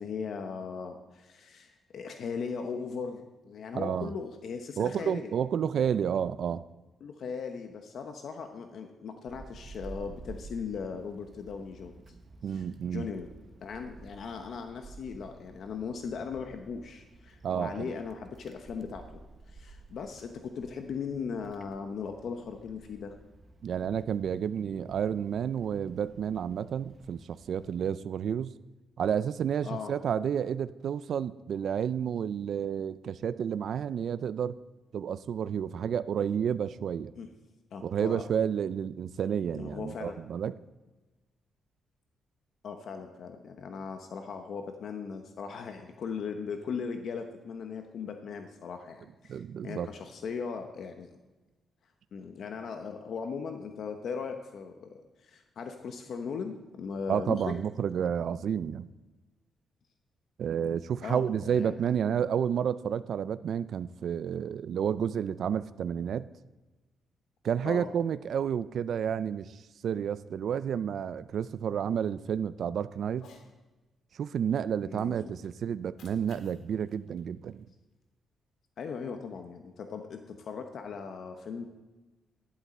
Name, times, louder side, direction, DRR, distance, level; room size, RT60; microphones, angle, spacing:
voice 1, 0.0-5.3 7.0-11.9 12.5-12.6 12.9-13.3 13.6-19.2 19.5-23.1 29.6-29.9 37.1-37.3 37.7-38.2 39.5-40.2 42.6-51.1 52.1-57.5 61.0-61.7 67.6-67.9 74.9-75.3 78.8-81.7, left 5 dB, 60° left, 6 dB, 0.9 m, -38 dB
voice 2, 3.7-4.1 4.8-6.6 12.4-13.1 17.4-17.8 23.6-28.5 29.0-34.6 34.9-37.1 37.8-40.5 49.3-49.9 57.1-58.9 60.4-66.3 67.4-73.3 74.1-77.7, right 8 dB, 60° right, 15 dB, 0.4 m, -30 dB
Wind, 9.3-27.8, right 2 dB, 35° right, 1.0 m, -52 dB
Cat, 73.1-73.5 75.7-78.1, left 4 dB, 80° left, 1.8 m, -59 dB
11.5 x 11.0 x 4.3 m, 1.2 s
cardioid pair, 120°, 0 cm